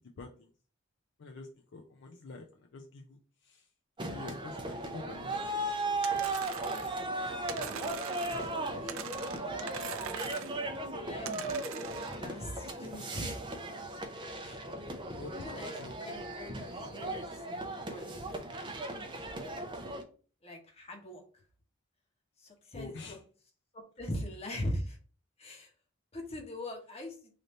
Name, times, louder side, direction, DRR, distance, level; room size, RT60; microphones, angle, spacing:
voice 1, 0.2-0.5 1.2-3.7 4.1-5.4 14.4-14.6 15.1-16.1 18.1-18.4 22.7-23.2, left 3 dB, 60° left, 2 dB, 0.5 m, -47 dB
sound 1, 4.0-20.0, right 2 dB, 25° right, 0.6 m, -37 dB
sound 2, 6.0-7.0 7.5-8.6 8.9-10.6 11.2-12.2, right 9 dB, 75° right, 0.4 m, -42 dB
voice 2, 7.5-9.5 10.6-13.4 15.3-15.7 16.0-16.6 16.9-17.2 17.7-18.2 20.4-21.2 22.4-23.2 23.7-25.0 25.4-25.7 26.1-27.2, left 1 dB, 30° left, 1 dB, 1.0 m, -41 dB
3.3 x 2.6 x 4.1 m, 0.39 s
head